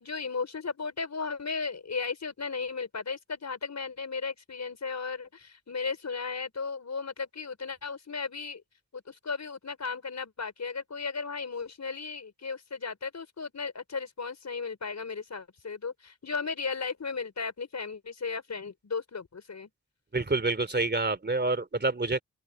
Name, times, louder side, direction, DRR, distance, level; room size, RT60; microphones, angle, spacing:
voice 1, 0.0-8.6 8.9-19.7, left 5 dB, 55° left, 5.8 m, -35 dB
voice 2, 20.1-22.2, right 3 dB, 30° right, 3.1 m, -27 dB
open air
cardioid pair, 65°, 32 cm